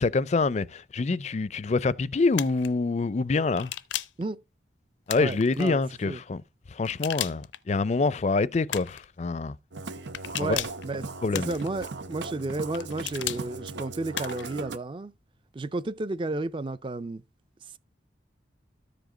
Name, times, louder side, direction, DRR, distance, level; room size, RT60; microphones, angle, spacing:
voice 1, 0.0-3.7 5.1-6.4 6.7-9.6 10.4-10.6 11.2-11.5, left 3 dB, 40° left, 0.4 m, -26 dB
sound 1, 2.3-2.7 3.6-4.2 5.1-5.7 6.8-7.6 8.7-9.1 10.1-10.8 11.3-11.9 12.7-13.4 14.1-14.5, left 12 dB, 85° left, 0.5 m, -35 dB
voice 2, 5.2-5.8 6.1-6.2 10.4-11.1 11.3-15.1 15.5-17.2 17.6-17.8, right 2 dB, 30° right, 0.4 m, -32 dB
Musical instrument, 9.7-14.8, right 3 dB, 75° right, 0.7 m, -38 dB
13.5 x 5.1 x 3.8 m
head